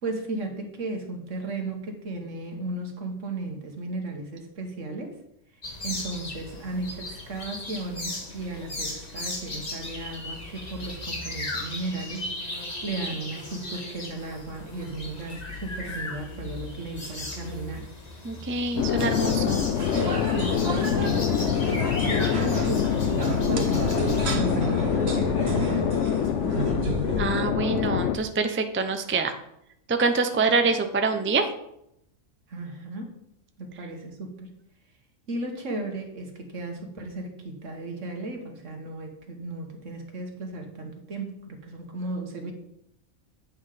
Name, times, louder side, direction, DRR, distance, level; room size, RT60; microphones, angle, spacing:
voice 1, 0.0-5.2 5.8-17.9 18.9-19.5 20.3-26.6 30.5-30.6 32.5-33.2 33.6-34.6 35.3-42.5, right 2 dB, 75° right, 3 dB, 1.7 m, -35 dB
sound 1, 5.6-24.4, left 2 dB, 35° left, 1.4 m, -37 dB
voice 2, 18.2-19.6 27.2-29.3 29.9-31.5, right 4 dB, 15° right, 7 dB, 0.5 m, -25 dB
sound 2, 18.8-28.2, left 8 dB, 70° left, 0.9 m, -25 dB
sound 3, 19.2-27.2, right 3 dB, 55° right, 1.3 m, -32 dB
8.7 x 5.7 x 5.0 m, 0.77 s
omnidirectional pair, 1.3 m